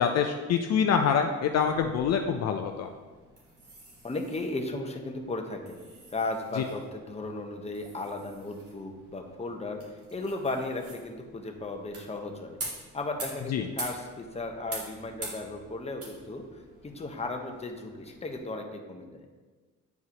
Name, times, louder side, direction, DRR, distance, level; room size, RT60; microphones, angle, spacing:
voice 1, 0.0-2.9 6.6-6.7 13.5-13.7, left 7 dB, 60° left, 5 dB, 0.5 m, -25 dB
sound 1, 1.5-18.4, right 2 dB, 50° right, 2.1 m, -46 dB
voice 2, 4.0-5.8 6.1-9.8 10.1-12.6 12.9-16.4 16.8-19.2, left 2 dB, 20° left, 3 dB, 0.9 m, -35 dB
9.3 x 4.7 x 2.8 m, 1.3 s
cardioid pair, 90°, 30 cm